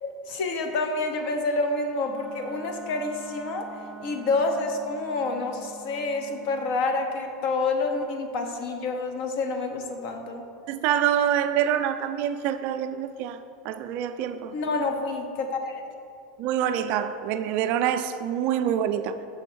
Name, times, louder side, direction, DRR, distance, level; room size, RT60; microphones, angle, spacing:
voice 1, 0.0-3.7 4.0-10.4 14.5-15.8, left 3 dB, 55° left, 0.9 m, -28 dB
Wind instrument woodwind instrument, 2.0-6.8, right 3 dB, ahead, 0.7 m, -45 dB
voice 2, 10.7-13.4 13.6-14.6 16.4-19.1, right 10 dB, 50° right, 0.3 m, -26 dB
6.9 x 3.5 x 6.2 m
supercardioid pair, 120°, 3 cm